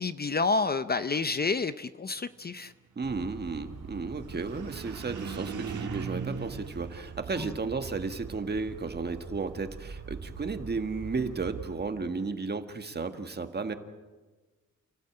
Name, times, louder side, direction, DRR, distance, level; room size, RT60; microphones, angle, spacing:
voice 1, 0.0-2.7 7.4-7.5, left 4 dB, 30° left, 12 dB, 0.7 m, -29 dB
voice 2, 3.0-13.7, right 4 dB, 30° right, 7 dB, 1.7 m, -34 dB
sound 1, 3.0-11.8, right 5 dB, 55° right, 3.6 m, -44 dB
sound 2, 4.1-7.7, right 5 dB, 75° right, 2.8 m, -39 dB
30.0 x 16.0 x 8.8 m, 1.3 s
wide cardioid pair, 140°, 31 cm